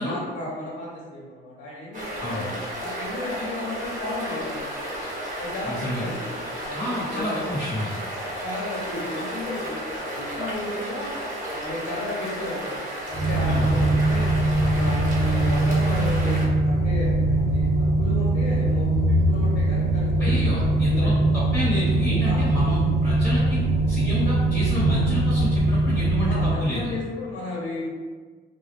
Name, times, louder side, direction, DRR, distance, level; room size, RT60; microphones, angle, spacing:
voice 1, 0.0-2.5 2.8-4.7 5.4-6.8 7.1-7.3 8.4-9.8 10.1-11.1 11.5-14.3 14.6-20.7 21.0-21.1 22.2-22.5 26.2-27.9, left 2 dB, 75° left, -6 dB, 0.7 m, -34 dB
sound 1, 1.9-16.5, equal, 40° right, 0.9 m, -33 dB
voice 2, 5.7-6.0 6.7-8.0 13.5-13.7 14.6-14.8 20.2-26.9, left 1 dB, 5° left, -10 dB, 0.9 m, -29 dB
sound 2, 13.1-26.5, right 2 dB, 40° left, 0.6 m, -22 dB
2.2 x 2.0 x 3.1 m, 1.4 s
cardioid pair, 90°, 20 cm